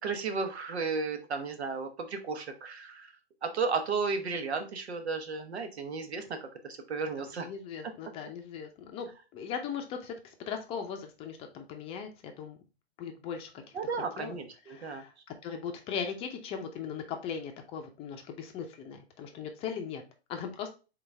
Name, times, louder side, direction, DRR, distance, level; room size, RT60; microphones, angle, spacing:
voice 1, 0.0-3.1 3.4-7.5 7.8-7.9 13.7-15.0, right 4 dB, 85° right, 6 dB, 1.2 m, -34 dB
voice 2, 7.4-10.1 10.5-12.6 13.0-14.4 14.7-15.1 15.4-20.0 20.3-20.7, left 7 dB, 20° left, 5 dB, 0.6 m, -39 dB
4.0 x 3.9 x 3.3 m, 0.32 s
hypercardioid pair, 140°, 32 cm